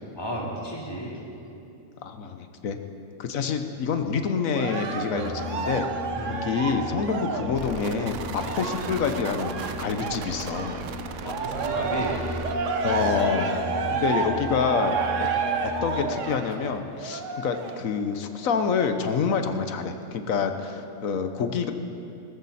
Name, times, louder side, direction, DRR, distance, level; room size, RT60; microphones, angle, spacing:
voice 1, 0.2-1.2 6.1-6.4 8.4-8.6 11.2-12.2 13.2-13.5, equal, 15° left, -3 dB, 2.4 m, -32 dB
voice 2, 2.0-2.8 3.2-5.9 6.3-10.9 12.8-13.5 13.9-15.3 15.6-21.7, left 6 dB, 75° left, 7 dB, 1.4 m, -27 dB
Cheering, 4.5-10.9 11.2-17.8 18.4-18.5, right 5 dB, 65° right, 1.3 m, -30 dB
sound 1, 5.1-16.3, left 5 dB, 20° right, 0.4 m, -38 dB
sound 2, 7.6-12.6, right 7 dB, 85° right, 1.2 m, -36 dB
19.5 x 13.5 x 4.2 m, 2.7 s
omnidirectional pair, 1.4 m